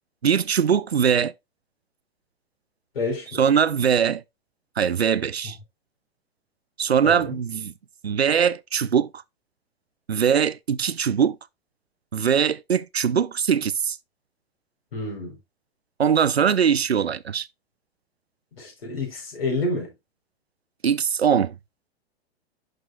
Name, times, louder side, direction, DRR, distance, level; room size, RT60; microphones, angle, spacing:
voice 1, 0.2-1.3 3.4-4.2 4.8-5.6 6.8-7.7 8.0-9.1 10.1-11.4 12.1-14.0 16.0-17.5 20.8-21.5, right 7 dB, 85° right, 0.5 m, -21 dB
voice 2, 2.9-3.4 7.0-7.4 14.9-15.4 18.6-19.9, left 2 dB, 70° left, 4.4 m, -29 dB
11.0 x 4.7 x 2.4 m
figure-of-eight pair, 100°, 31 cm